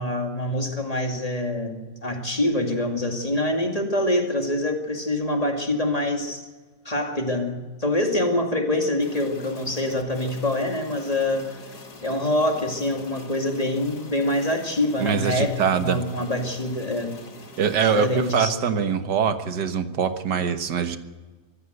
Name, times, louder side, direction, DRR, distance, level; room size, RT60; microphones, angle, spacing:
voice 1, 0.0-6.5 6.8-11.6 12.0-17.2 17.8-18.7, left 1 dB, 20° left, 3 dB, 2.3 m, -25 dB
sound 1, 9.0-18.4, left 3 dB, 70° left, 2.8 m, -44 dB
voice 2, 15.0-16.0 17.6-21.0, right 7 dB, 85° right, 9 dB, 1.9 m, -23 dB
24.0 x 14.5 x 7.9 m, 1.3 s
omnidirectional pair, 1.8 m